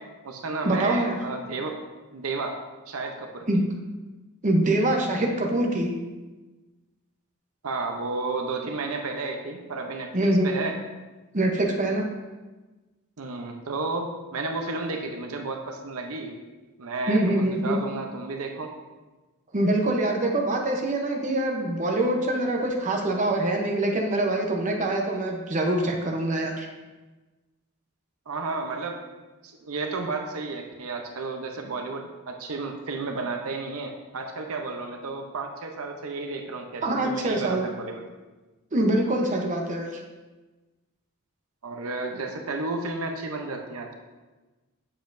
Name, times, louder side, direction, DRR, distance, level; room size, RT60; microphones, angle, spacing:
voice 1, 0.0-1.8 2.1-2.6 2.9-3.5 7.6-10.8 13.2-16.4 16.8-18.7 28.3-29.0 29.4-38.0 41.6-43.9, right 3 dB, 80° right, 3 dB, 0.7 m, -32 dB
voice 2, 0.6-1.2 3.5-3.7 4.4-5.9 10.1-10.6 11.3-12.0 17.1-17.8 19.5-26.7 36.8-37.6 38.7-39.9, right 1 dB, 35° right, 1 dB, 0.8 m, -24 dB
7.3 x 6.8 x 2.6 m, 1.2 s
head